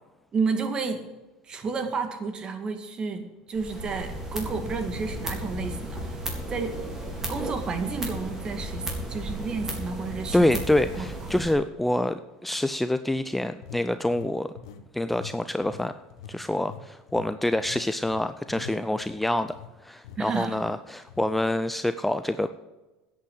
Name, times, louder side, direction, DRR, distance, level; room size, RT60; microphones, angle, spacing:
voice 1, 0.3-1.0 1.4-6.2 6.5-10.6 11.0-11.1 20.2-20.6, right 4 dB, 30° right, 8 dB, 2.0 m, -31 dB
sound 1, 3.6-11.5, right 1 dB, 15° right, 3.6 m, -34 dB
voice 2, 10.3-14.5 14.9-16.0 16.3-19.5 19.8-22.5, left 1 dB, 5° left, 11 dB, 0.5 m, -26 dB
sound 2, 13.6-14.9 15.1-15.4 15.6-19.7 20.0-20.2 20.6-20.7 21.1-21.3, left 7 dB, 85° left, 1.2 m, -44 dB
10.5 x 8.7 x 7.8 m, 1.1 s
supercardioid pair, 105°, 3 cm